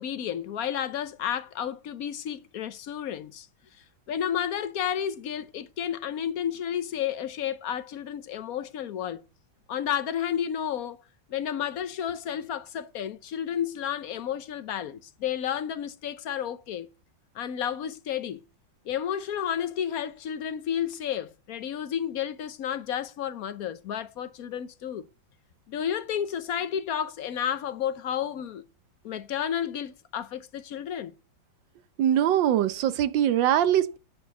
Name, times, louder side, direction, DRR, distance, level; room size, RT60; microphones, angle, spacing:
voice 1, 0.0-3.5 4.1-9.2 9.7-11.0 11.3-16.9 17.3-18.4 18.8-25.1 25.7-28.7 29.0-31.1, left 9 dB, 60° left, 1.0 m, -31 dB
voice 2, 32.0-34.0, right 11 dB, 70° right, 1.4 m, -22 dB
9.4 x 6.3 x 6.9 m
omnidirectional pair, 2.2 m